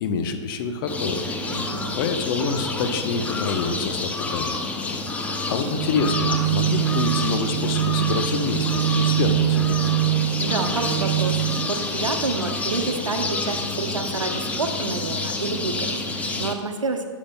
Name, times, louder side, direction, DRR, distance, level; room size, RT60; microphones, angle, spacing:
voice 1, 0.0-1.2 1.9-4.6 5.2-9.8, left 5 dB, 45° left, 7 dB, 0.8 m, -27 dB
sound 1, 0.9-16.5, left 3 dB, 10° left, 0.5 m, -28 dB
voice 2, 1.5-2.0 10.4-17.0, right 4 dB, 85° right, 5 dB, 0.9 m, -29 dB
sound 2, 5.7-11.7, right 15 dB, 40° right, 0.5 m, -24 dB
11.5 x 7.3 x 2.2 m, 2.1 s
hypercardioid pair, 120°, 16 cm